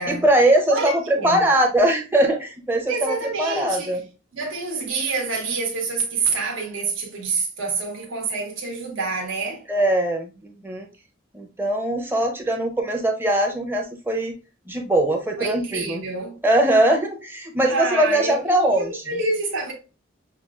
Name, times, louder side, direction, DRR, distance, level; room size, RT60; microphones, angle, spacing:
voice 1, 0.1-4.0 9.7-10.9 11.3-14.4 14.7-16.0 16.4-19.0, right 1 dB, 10° right, 0.6 m, -21 dB
voice 2, 0.7-1.5 2.9-4.0 4.3-9.7 15.4-16.4 17.6-19.7, right 4 dB, 75° right, 1.1 m, -27 dB
5.6 x 2.4 x 2.3 m
head